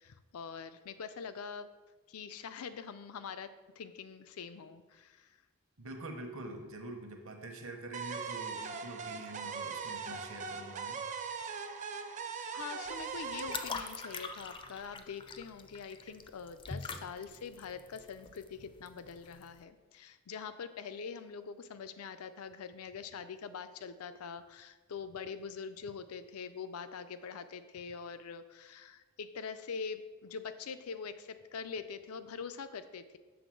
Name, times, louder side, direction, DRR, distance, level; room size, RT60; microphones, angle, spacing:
voice 1, 0.0-1.7 2.1-5.3 11.9-12.3 12.5-33.2, left 6 dB, 85° left, 12 dB, 0.5 m, -44 dB
voice 2, 5.8-11.0, right 2 dB, 65° right, 4 dB, 1.0 m, -45 dB
sound 1, 7.9-14.9, right 5 dB, 35° right, 0.5 m, -41 dB
sound 2, 12.9-19.6, left 4 dB, 25° left, 0.4 m, -44 dB
7.1 x 3.7 x 6.2 m, 1.3 s
head